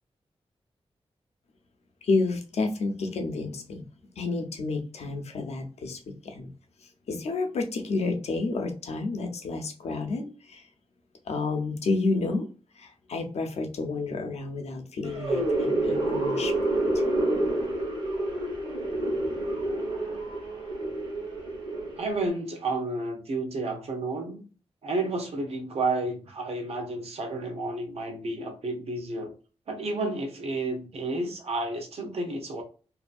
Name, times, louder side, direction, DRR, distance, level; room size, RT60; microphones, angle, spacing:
voice 1, 2.0-3.9 4.1-6.5 7.1-10.7 11.3-12.5 12.8-16.5 16.9-17.0, left 3 dB, 85° left, 0.6 m, -30 dB
sound 1, 15.1-22.3, right 1 dB, 50° right, 1.2 m, -28 dB
voice 2, 22.0-24.4 24.8-29.3 29.7-32.6, right 2 dB, 75° right, 0.8 m, -31 dB
2.7 x 2.6 x 2.3 m
wide cardioid pair, 110°, 11 cm